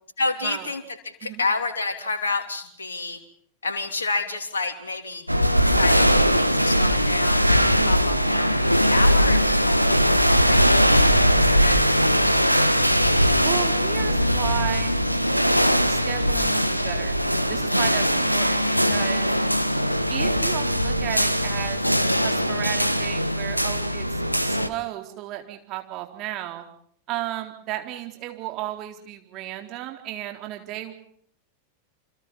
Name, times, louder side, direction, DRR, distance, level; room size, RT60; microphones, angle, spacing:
voice 1, 0.2-3.2 3.6-5.3 5.6-10.1 10.4-10.6 10.9-12.9, left 3 dB, 70° left, 6 dB, 3.1 m, -30 dB
sound 1, 5.3-24.7, equal, 90° right, 1.3 m, -20 dB
voice 2, 13.4-14.9 15.9-17.2 17.5-19.3 20.1-21.8 22.2-26.6 27.1-30.9, right 14 dB, 40° right, 4 dB, 4.0 m, -34 dB
28.5 x 25.5 x 5.5 m, 0.62 s
figure-of-eight pair, 90°, 0 cm